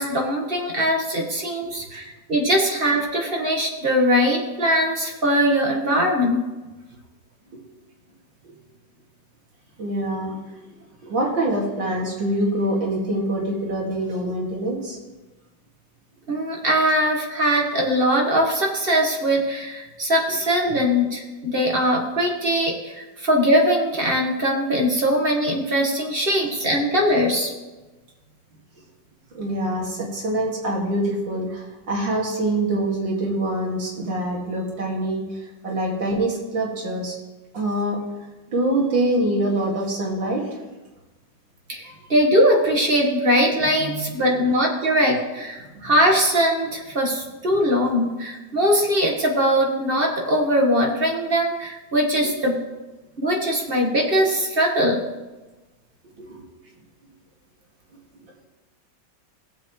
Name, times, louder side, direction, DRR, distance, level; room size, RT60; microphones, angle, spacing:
voice 1, 0.0-6.4 16.3-27.5 41.7-41.8 42.1-52.5 53.2-55.0, equal, 30° right, 0 dB, 1.6 m, -21 dB
voice 2, 9.8-10.4 11.1-15.0 29.3-35.2 35.6-37.1 37.5-38.0 38.5-40.4 41.8-41.9 43.8-44.0 45.6-45.9 56.2-56.5, right 1 dB, 90° right, -2 dB, 2.9 m, -25 dB
17.0 x 7.4 x 3.1 m, 1.1 s
omnidirectional pair, 2.0 m